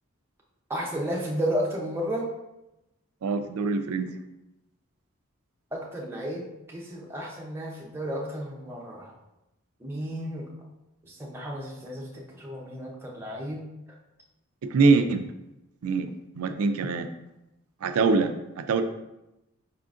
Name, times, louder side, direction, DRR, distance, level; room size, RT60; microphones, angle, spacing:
voice 1, 0.7-2.3 5.7-9.1 9.8-10.5 11.1-13.6, equal, 10° right, -3 dB, 0.7 m, -33 dB
voice 2, 3.2-4.1 14.6-15.3 15.8-16.1 16.4-17.1 17.8-18.8, right 4 dB, 85° right, 9 dB, 0.4 m, -24 dB
5.1 x 3.7 x 2.4 m, 0.93 s
head